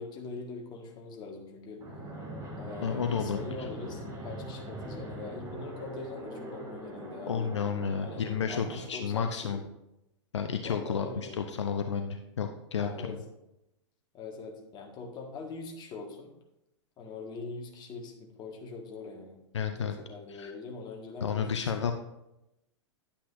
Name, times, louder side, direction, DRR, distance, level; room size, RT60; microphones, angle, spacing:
voice 1, 0.0-1.8 2.6-7.5 8.0-9.6 10.6-11.4 12.8-13.2 14.1-16.3 17.0-19.4 19.8-21.9, left 4 dB, 25° left, 2 dB, 1.6 m, -42 dB
Fixed-wing aircraft airplane, 1.8-8.9, right 1 dB, 20° right, 1.9 m, -41 dB
voice 2, 2.8-3.7 7.3-9.6 10.3-13.2 19.5-19.9 20.3-20.5 21.2-21.9, left 6 dB, 65° left, 6 dB, 0.6 m, -31 dB
10.0 x 8.4 x 2.5 m, 0.86 s
figure-of-eight pair, 100°, 16 cm